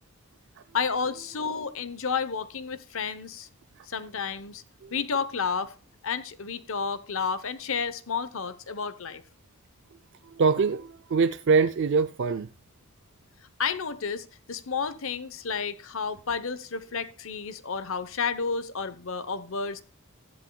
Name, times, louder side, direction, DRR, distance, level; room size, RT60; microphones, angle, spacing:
voice 1, 0.7-3.5 3.9-4.6 4.9-5.7 6.0-9.2 13.6-19.8, left 5 dB, 65° left, 0.9 m, -31 dB
voice 2, 10.2-12.5, right 5 dB, 55° right, 0.4 m, -24 dB
14.5 x 11.0 x 2.3 m
head